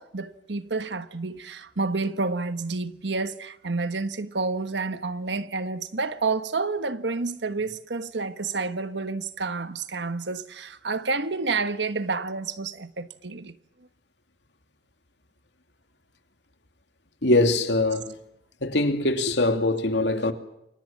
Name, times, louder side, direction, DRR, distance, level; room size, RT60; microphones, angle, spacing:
voice 1, 0.0-13.6, right 3 dB, 80° right, 1.3 m, -29 dB
voice 2, 17.2-18.1 18.6-20.3, left 2 dB, 80° left, 2.6 m, -22 dB
29.0 x 24.0 x 7.4 m
head